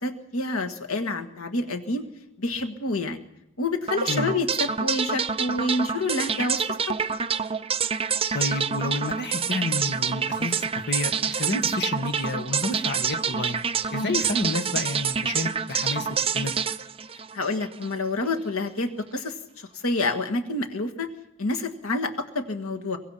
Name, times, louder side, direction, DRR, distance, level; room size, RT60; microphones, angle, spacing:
voice 1, 0.0-2.0 2.4-3.2 3.6-6.9 13.9-14.2 17.3-21.1 21.4-23.0, left 2 dB, 90° left, 5 dB, 1.8 m, -28 dB
sound 1, 3.9-18.0, right 6 dB, 25° right, 0.7 m, -27 dB
voice 2, 8.3-13.6 13.9-16.1 16.3-16.6, left 2 dB, 55° left, 7 dB, 1.7 m, -30 dB
23.5 x 21.0 x 5.8 m, 0.84 s
head